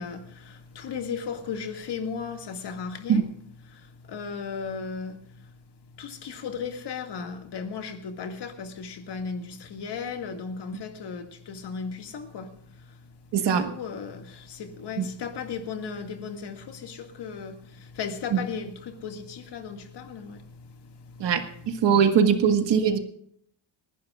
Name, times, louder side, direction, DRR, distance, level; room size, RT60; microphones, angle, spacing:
voice 1, 0.0-3.3 3.6-5.5 5.9-21.9 22.4-22.5, left 5 dB, 55° left, 2.1 m, -36 dB
voice 2, 13.3-13.7 15.0-15.1 18.3-18.4 21.2-23.0, right 7 dB, 60° right, 1.7 m, -21 dB
30.0 x 11.5 x 2.4 m
cardioid pair, 160°, 47 cm